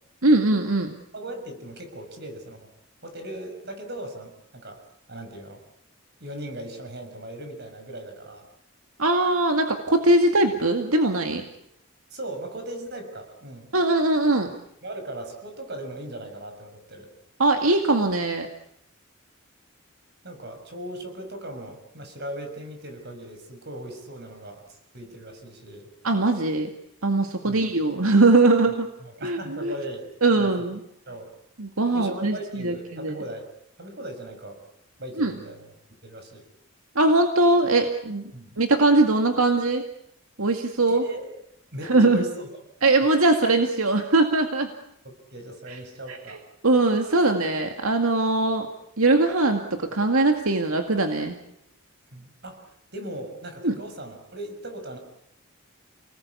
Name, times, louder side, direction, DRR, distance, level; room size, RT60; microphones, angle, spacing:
voice 1, 0.2-0.9 9.0-11.4 13.7-14.5 17.4-18.5 26.0-26.7 27.0-28.9 29.2-29.7 30.2-30.8 31.6-33.1 35.2-35.3 37.0-38.3 38.6-39.8 40.4-41.0 41.8-42.2 42.8-44.7 45.7-45.8 46.3-46.4 46.6-48.7 49.0-51.4 53.6-53.8, right 2 dB, 80° right, 5 dB, 2.1 m, -21 dB
voice 2, 1.1-2.7 3.0-4.8 5.1-5.6 6.2-8.5 12.1-13.7 14.8-17.1 20.2-24.6 24.9-25.9 27.4-27.7 29.0-30.1 30.3-30.5 31.1-31.3 31.9-33.5 33.8-34.6 35.0-35.7 36.0-36.4 38.3-38.5 40.9-41.3 41.7-42.5 45.0-46.4 52.1-52.6 52.9-55.0, right 1 dB, 50° right, 6 dB, 6.5 m, -38 dB
29.5 x 19.5 x 8.4 m, 0.77 s
head